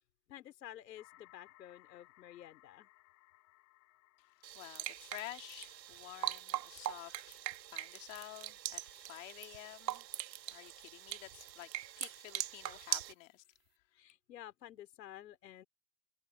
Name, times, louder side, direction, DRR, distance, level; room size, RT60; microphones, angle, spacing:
voice 1, 0.3-2.9 13.9-15.6, left 12 dB, 80° left, 3.9 m, -52 dB
sound 1, 1.0-6.7, left 20 dB, 30° left, 5.4 m, -65 dB
voice 2, 4.2-7.4 7.7-10.1 10.5-13.4, left 20 dB, 50° left, 2.6 m, -51 dB
sound 2, 4.4-13.1, right 13 dB, 90° right, 1.6 m, -42 dB
supercardioid pair, 155°, 49 cm